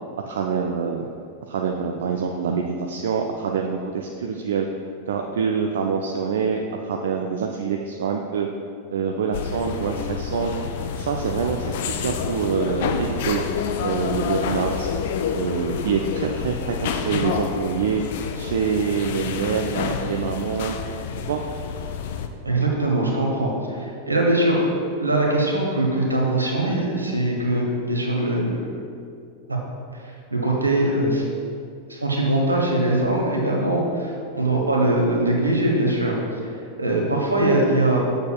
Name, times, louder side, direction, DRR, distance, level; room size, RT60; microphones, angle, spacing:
voice 1, 0.3-1.1 1.4-4.7 5.1-8.5 8.9-10.5 11.0-13.4 13.8-14.9 15.3-18.0 18.3-20.7 21.3-21.4, right 6 dB, 60° right, 2 dB, 0.4 m, -25 dB
sound 1, 9.3-22.3, left 6 dB, 55° left, 0.4 m, -28 dB
voice 2, 22.4-24.7 25.0-28.7 29.9-31.2 31.9-36.1 36.4-38.0, right 1 dB, 80° right, -1 dB, 1.1 m, -22 dB
8.0 x 6.7 x 2.3 m, 2.4 s
figure-of-eight pair, 90°, 0 cm